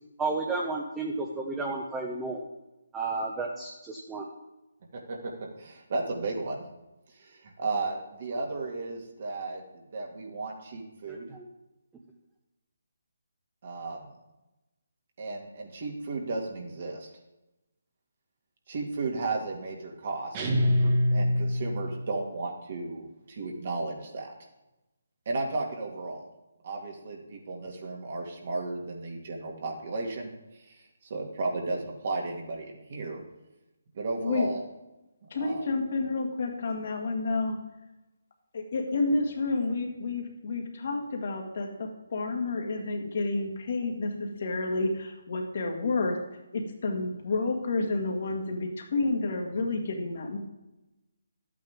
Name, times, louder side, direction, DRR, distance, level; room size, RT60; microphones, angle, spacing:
voice 1, 0.2-2.4 2.9-4.2 11.1-11.4, right 3 dB, 10° right, 0 dB, 0.9 m, -32 dB
voice 2, 4.9-5.3 5.6-6.6 7.1-11.3 13.6-14.0 15.2-17.1 18.7-24.3 25.3-26.3 26.6-30.3 30.7-33.2 33.9-34.6 35.2-35.6 49.5-49.6, right 3 dB, 50° right, 0 dB, 2.1 m, -34 dB
sound 1, 20.3-22.1, left 1 dB, 30° right, 1.5 m, -25 dB
voice 3, 35.3-37.6 38.5-46.2 46.5-50.4, left 3 dB, 55° left, 2 dB, 1.7 m, -30 dB
12.0 x 8.5 x 3.6 m, 0.99 s
figure-of-eight pair, 150°, 0 cm